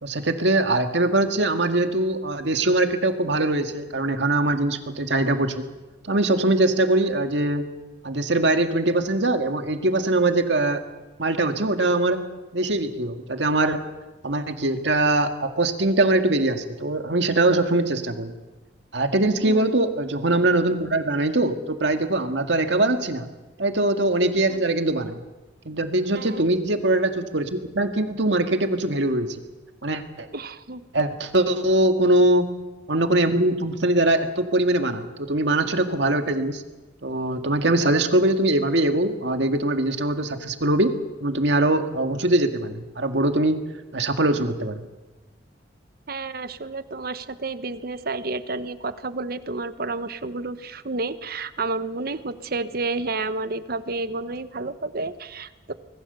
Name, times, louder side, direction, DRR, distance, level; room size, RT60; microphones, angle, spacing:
voice 1, 0.0-5.6 6.0-7.7 8.0-10.8 11.2-12.2 12.5-13.8 14.2-18.3 18.9-23.3 23.6-25.2 25.7-29.4 29.8-30.3 30.9-32.5 32.9-36.6 37.0-40.9 41.2-43.6 43.9-44.9, right 2 dB, 70° right, 6 dB, 2.0 m, -22 dB
voice 2, 19.4-19.8 24.5-24.6 26.1-26.5 30.3-30.8 46.1-55.7, right 3 dB, 55° right, 12 dB, 1.0 m, -30 dB
25.0 x 20.5 x 6.9 m, 1.1 s
head